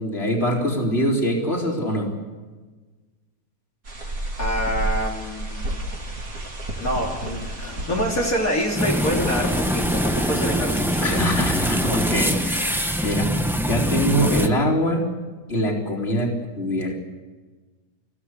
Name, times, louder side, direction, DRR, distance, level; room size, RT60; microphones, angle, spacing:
voice 1, 0.0-2.1 11.0-15.1 15.5-17.0, equal, 35° left, 0 dB, 4.5 m, -24 dB
sound 1, 3.8-13.2, right 1 dB, 55° right, 3.9 m, -33 dB
voice 2, 4.4-5.7 6.8-11.2, equal, 55° left, -3 dB, 3.8 m, -26 dB
Sliding door, 7.3-12.3, equal, 90° left, 5.3 m, -39 dB
sound 2, 8.8-14.5, equal, ahead, 1.2 m, -23 dB
28.5 x 17.0 x 8.3 m, 1.3 s
omnidirectional pair, 1.8 m